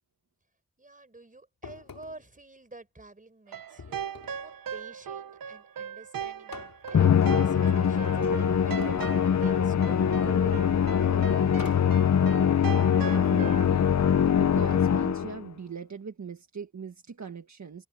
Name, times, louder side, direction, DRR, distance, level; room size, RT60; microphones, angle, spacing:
voice 1, 0.8-9.0 9.4-11.8, right 2 dB, 25° right, 4.7 m, -48 dB
sound 1, 1.6-2.3 3.8-4.5 6.5-7.2 8.8-9.5 11.6-12.0, left 5 dB, 75° left, 5.3 m, -46 dB
sound 2, 3.5-13.6, right 8 dB, 75° right, 0.8 m, -39 dB
Musical instrument, 6.9-15.5, left 8 dB, 55° left, 0.7 m, -23 dB
voice 2, 12.8-17.9, right 6 dB, 55° right, 1.6 m, -41 dB
wide cardioid pair, 140°, 34 cm